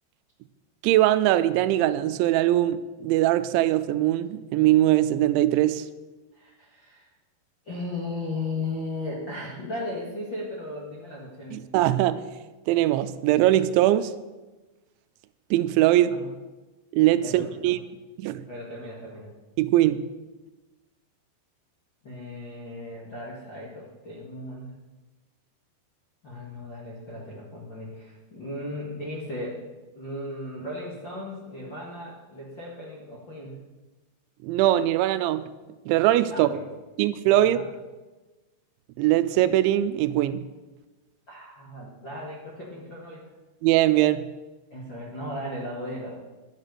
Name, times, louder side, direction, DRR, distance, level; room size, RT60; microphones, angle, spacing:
voice 1, 0.8-5.8 11.5-12.2 12.7-14.1 15.5-16.2 16.9-17.8 18.2-18.4 19.6-20.0 34.4-35.4 35.9-36.5 37.0-37.6 39.0-40.4 43.6-44.3, right 14 dB, 85° right, 3.0 m, -21 dB
voice 2, 6.3-7.1 7.6-11.6 16.0-16.3 17.2-17.8 18.5-19.3 22.0-24.7 26.2-29.6 29.9-33.6 36.3-36.6 37.4-37.7 41.3-43.3 44.7-46.2, left 1 dB, 50° left, 1.4 m, -36 dB
12.0 x 9.0 x 6.7 m
omnidirectional pair, 5.2 m